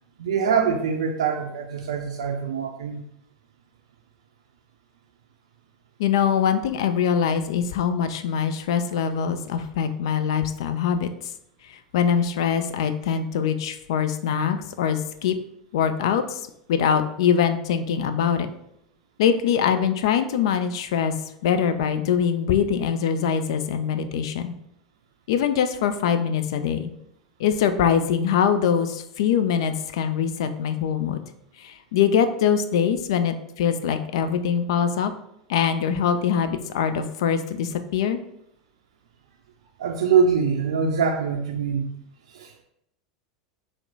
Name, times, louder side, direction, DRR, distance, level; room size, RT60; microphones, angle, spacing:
voice 1, 0.2-3.0 39.8-41.9 42.3-42.6, right 6 dB, 70° right, 2 dB, 0.4 m, -24 dB
voice 2, 6.0-11.1 11.7-15.4 15.7-16.4 16.7-18.5 19.2-21.1 21.4-24.5 25.3-26.9 27.4-31.2 31.6-35.1 35.5-38.2, left 8 dB, 65° left, 9 dB, 0.4 m, -23 dB
4.3 x 2.1 x 3.9 m, 0.77 s
hypercardioid pair, 85°, 3 cm